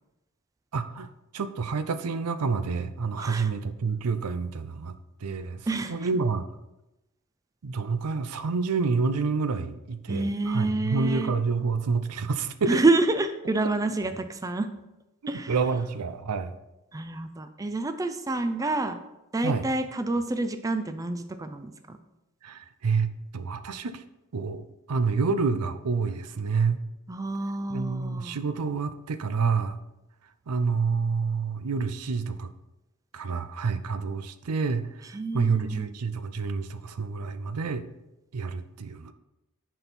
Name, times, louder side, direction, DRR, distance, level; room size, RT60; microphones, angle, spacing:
voice 1, 0.7-1.1 1.3-5.0 5.2-6.4 7.6-12.8 15.5-16.5 19.4-19.6 22.4-24.0 24.3-26.8 27.7-29.8 30.5-32.5 33.1-37.9 38.3-39.1, right 4 dB, 85° right, 11 dB, 0.5 m, -28 dB
voice 2, 3.2-3.5 5.7-6.1 10.1-11.3 12.7-14.7 15.3-15.6 16.9-19.0 19.3-22.0 27.1-28.4 35.1-36.0, right 2 dB, 15° right, 9 dB, 0.4 m, -28 dB
10.0 x 4.4 x 4.2 m, 0.96 s
head